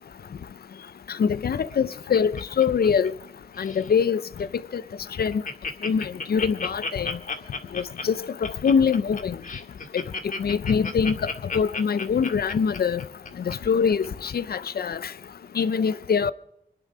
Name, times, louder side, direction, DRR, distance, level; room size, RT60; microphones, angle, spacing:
voice 1, 1.2-2.3 2.6-3.1 3.6-4.2 4.7-4.8 5.2-5.4 5.8-7.2 7.7-8.2 8.6-9.4 9.9-10.0 10.4-11.2 11.5-13.0 13.5-15.0 15.6-16.3, left 6 dB, 80° left, 0.6 m, -23 dB
Laughter, 1.5-3.3 3.5-3.9 4.4-4.5 4.8-4.9 5.1-13.5 14.0-14.1, left 4 dB, 60° left, 1.9 m, -33 dB
26.0 x 11.0 x 4.9 m
wide cardioid pair, 90°, 16 cm